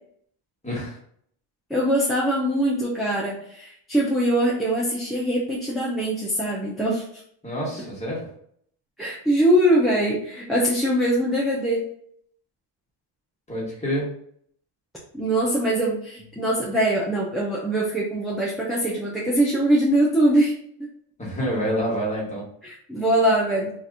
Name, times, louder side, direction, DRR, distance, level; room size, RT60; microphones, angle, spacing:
voice 1, 0.6-1.0 7.4-8.3 13.5-14.1 21.2-22.4, equal, 15° left, -5 dB, 1.2 m, -27 dB
voice 2, 1.7-7.2 9.0-11.8 15.1-20.5 22.6-23.7, right 1 dB, ahead, -6 dB, 0.5 m, -22 dB
2.8 x 2.5 x 3.5 m, 0.66 s
cardioid pair, 140°, 45 cm